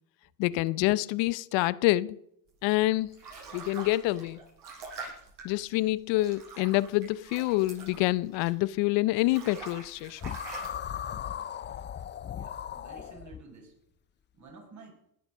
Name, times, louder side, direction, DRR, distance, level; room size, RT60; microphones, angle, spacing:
voice 1, 0.4-2.2 2.6-3.1 3.5-4.4 5.4-10.4, left 18 dB, 65° left, 0.7 m, -27 dB
sound 1, 2.7-8.8 9.1-10.7, right 4 dB, 60° right, 7.9 m, -45 dB
sound 2, 10.2-13.4, left 9 dB, 25° left, 0.5 m, -37 dB
voice 2, 12.3-13.8 14.3-15.0, right 3 dB, 35° right, 5.8 m, -51 dB
19.0 x 7.9 x 6.5 m
supercardioid pair, 105°, 47 cm